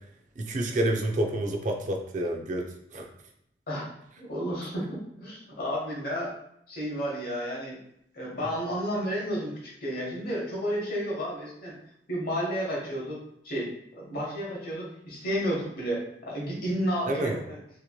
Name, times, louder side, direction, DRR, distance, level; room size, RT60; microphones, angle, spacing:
voice 1, 0.4-2.6 2.9-3.1 17.1-17.4, right 1 dB, 45° right, 2 dB, 0.4 m, -28 dB
voice 2, 4.2-6.3 6.7-7.8 8.1-11.8 12.1-13.2 13.4-17.6, equal, 55° left, -3 dB, 1.0 m, -32 dB
2.9 x 2.8 x 2.3 m, 0.75 s
head